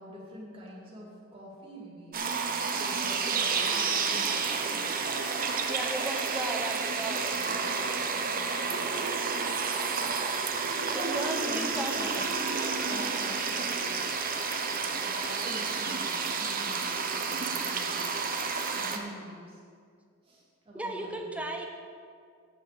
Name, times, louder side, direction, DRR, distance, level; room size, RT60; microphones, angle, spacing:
voice 1, 0.0-5.1 7.1-9.0 10.9-12.3 12.8-14.4 14.7-18.3 18.7-19.6 20.2-21.5, equal, 25° right, -5 dB, 2.4 m, -45 dB
sound 1, 2.1-19.0, right 5 dB, 45° right, 0.8 m, -30 dB
voice 2, 5.7-7.6 11.0-12.1 20.7-21.6, right 1 dB, 5° right, 2 dB, 0.8 m, -36 dB
8.2 x 6.8 x 6.8 m, 2.2 s
head